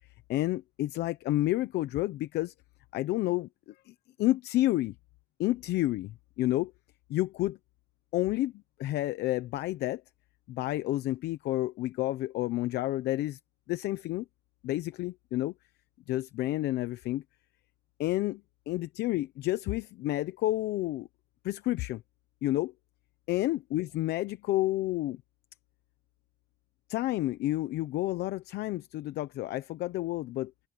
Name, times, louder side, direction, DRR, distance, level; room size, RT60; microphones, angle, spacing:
voice 1, 0.3-2.5 2.9-3.5 3.9-4.9 5.4-6.7 7.1-7.6 8.1-8.5 8.8-10.0 10.5-13.4 13.7-14.2 14.6-15.5 16.1-17.2 18.0-18.4 18.7-21.1 21.4-22.0 22.4-22.7 23.3-25.2 26.9-30.5, left 16 dB, 75° left, 0.9 m, -30 dB
open air
cardioid pair, 110°, 17 cm